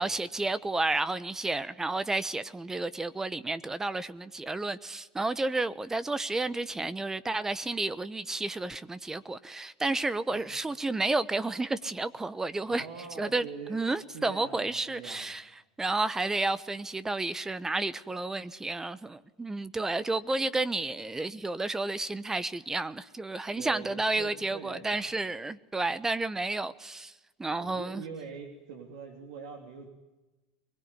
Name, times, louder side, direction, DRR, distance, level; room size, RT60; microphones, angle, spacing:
voice 1, 0.0-12.9 13.2-15.4 15.8-27.1 27.4-28.0, right 2 dB, 15° right, 1.0 m, -31 dB
voice 2, 12.7-13.8 14.1-15.4 23.5-25.2 27.5-29.9, right 6 dB, 75° right, 3.3 m, -43 dB
23.5 x 21.0 x 9.8 m
hypercardioid pair, 90°, 4 cm